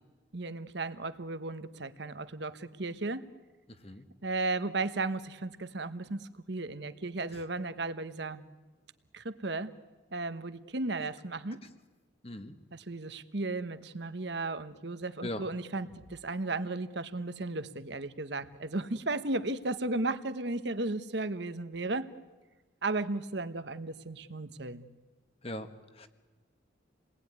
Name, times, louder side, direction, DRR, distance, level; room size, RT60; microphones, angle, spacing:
voice 1, 0.3-3.2 4.2-8.4 9.1-9.7 10.1-11.6 12.7-22.1 22.8-24.9, right 2 dB, 60° right, 12 dB, 1.1 m, -35 dB
voice 2, 3.7-4.1 7.3-7.4 12.2-12.5 15.2-15.4 25.4-26.1, left 1 dB, 30° left, 9 dB, 1.4 m, -40 dB
29.0 x 19.5 x 9.6 m, 1.2 s
head